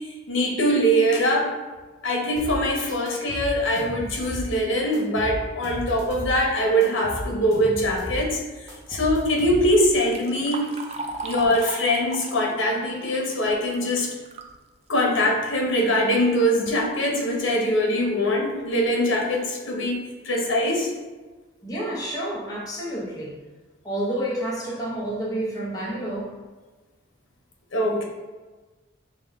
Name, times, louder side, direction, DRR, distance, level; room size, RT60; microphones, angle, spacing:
voice 1, 0.3-1.5 2.0-8.4 8.9-10.6 11.2-14.1 14.9-20.9 27.7-28.0, equal, 75° left, -1 dB, 1.0 m, -22 dB
sound 1, 2.4-2.6 3.1-4.5 4.9-6.4 6.8-8.2 8.7-9.9, equal, 15° right, 0.9 m, -34 dB
Liquid, 9.5-14.6 15.0-15.1 16.0-16.1 16.5-16.8 17.4-17.5 18.0-18.1 18.5-18.8, right 3 dB, 30° right, 0.3 m, -38 dB
voice 2, 21.6-23.4 23.8-26.3, right 1 dB, 20° left, -5 dB, 0.8 m, -29 dB
6.0 x 2.3 x 3.5 m, 1.3 s
head